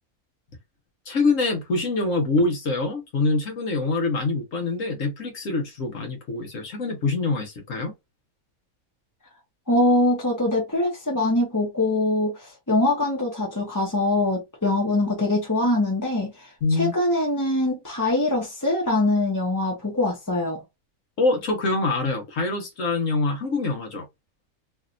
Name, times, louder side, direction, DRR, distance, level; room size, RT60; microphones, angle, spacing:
voice 1, 1.1-7.9 16.6-16.9 21.2-24.0, left 3 dB, 60° left, 1.4 m, -25 dB
voice 2, 9.7-20.6, left 1 dB, 15° left, 0.8 m, -23 dB
3.3 x 2.7 x 2.4 m
omnidirectional pair, 1.5 m